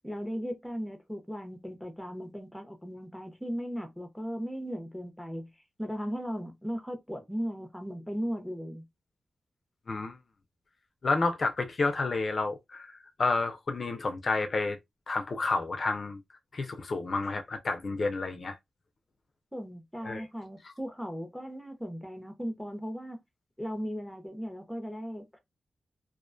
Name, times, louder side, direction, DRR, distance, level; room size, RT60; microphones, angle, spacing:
voice 1, 0.0-5.5 5.8-8.8 19.5-23.2 23.6-25.4, equal, ahead, 0.6 m, -37 dB
voice 2, 9.9-10.2 11.0-12.9 13.2-14.8 15.1-16.2 16.5-18.6 20.0-20.3 20.6-20.7, left 3 dB, 50° left, 0.4 m, -30 dB
2.4 x 2.2 x 2.4 m
wide cardioid pair, 100°, 0 cm